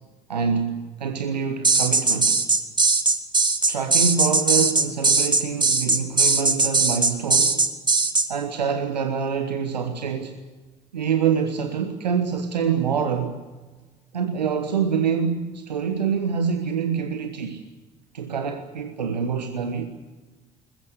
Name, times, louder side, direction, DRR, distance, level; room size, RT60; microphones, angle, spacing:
voice 1, 0.3-2.4 3.7-7.7 8.3-10.3 10.9-13.4 14.1-17.6 18.1-19.9, right 6 dB, 90° right, 7 dB, 1.2 m, -26 dB
sound 1, 1.6-8.3, right 3 dB, 20° right, 2.9 m, -19 dB
21.5 x 21.0 x 8.1 m, 1.3 s
figure-of-eight pair, 55°, 21 cm